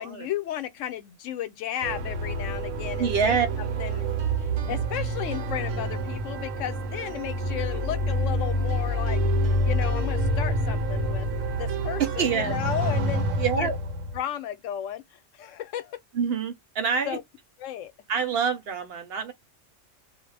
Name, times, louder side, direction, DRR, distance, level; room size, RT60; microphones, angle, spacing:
voice 1, 0.0-4.1 4.7-9.2 9.6-11.3 11.5-13.2 13.6-13.7 14.1-16.0 17.1-17.2 17.6-17.9, left 11 dB, 85° left, 0.9 m, -34 dB
sound 1, 1.8-14.2, right 1 dB, 90° right, 1.0 m, -27 dB
voice 2, 3.0-3.5 4.6-4.7 12.0-12.6 13.4-13.8 16.1-17.2 18.1-19.3, right 6 dB, 60° right, 0.8 m, -26 dB
2.3 x 2.0 x 3.2 m
omnidirectional pair, 1.3 m